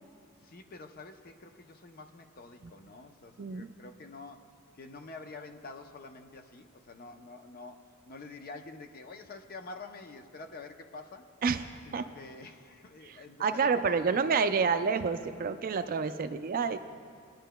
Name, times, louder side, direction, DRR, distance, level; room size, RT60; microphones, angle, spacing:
voice 1, 0.4-11.3 11.9-14.6 16.2-16.3, left 3 dB, 45° left, 6 dB, 0.6 m, -47 dB
voice 2, 3.4-3.7 11.4-12.0 13.4-16.8, right 5 dB, 40° right, 9 dB, 0.4 m, -28 dB
23.0 x 10.0 x 2.2 m, 2.1 s
head